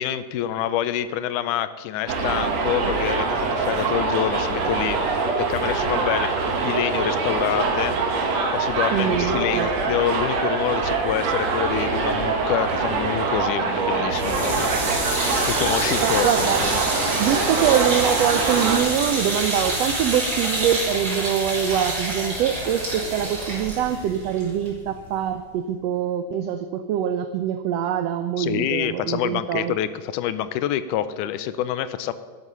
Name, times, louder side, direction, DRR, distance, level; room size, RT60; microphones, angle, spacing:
voice 1, 0.0-8.0 8.5-15.1 15.5-16.8 28.4-32.1, left 11 dB, 85° left, 14 dB, 2.1 m, -27 dB
Subway metro underground, 2.1-18.8, right 4 dB, 60° right, 2.5 m, -24 dB
voice 2, 8.9-9.7 16.0-16.6 17.2-29.8, right 9 dB, 90° right, 10 dB, 1.4 m, -24 dB
sound 1, 14.1-25.2, right 1 dB, 30° right, 3.8 m, -27 dB
11.5 x 11.0 x 5.5 m, 1.5 s
omnidirectional pair, 3.6 m